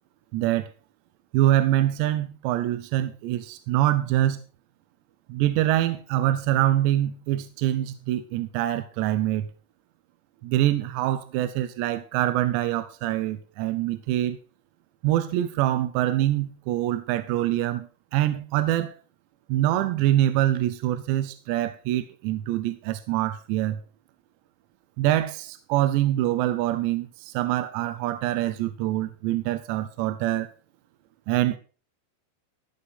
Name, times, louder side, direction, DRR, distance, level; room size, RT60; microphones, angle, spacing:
voice 1, 0.3-0.7 1.3-4.4 5.3-9.5 10.4-14.4 15.0-18.9 19.5-23.8 25.0-30.5 31.3-31.6, right 13 dB, 80° right, 2.9 m, -25 dB
14.5 x 5.9 x 5.6 m
omnidirectional pair, 5.2 m